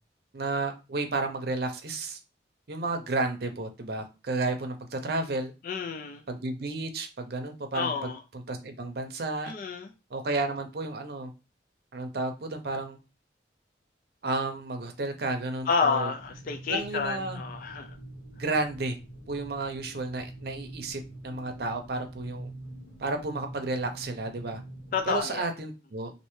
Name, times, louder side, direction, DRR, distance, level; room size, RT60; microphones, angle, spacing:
voice 1, 0.3-2.2 2.7-5.5 6.3-8.1 8.5-9.5 10.1-11.3 11.9-13.0 14.2-16.1 16.7-17.4 18.4-19.0 19.3-22.5 23.0-24.6 25.1-26.1, right 2 dB, 60° right, 6 dB, 0.6 m, -32 dB
voice 2, 5.6-6.2 7.7-8.2 9.5-9.9 15.7-18.0 24.9-25.5, left 5 dB, 50° left, 4 dB, 0.3 m, -30 dB
sound 1, 16.1-25.2, right 1 dB, 75° left, 1.2 m, -45 dB
3.2 x 2.7 x 3.0 m, 0.29 s
head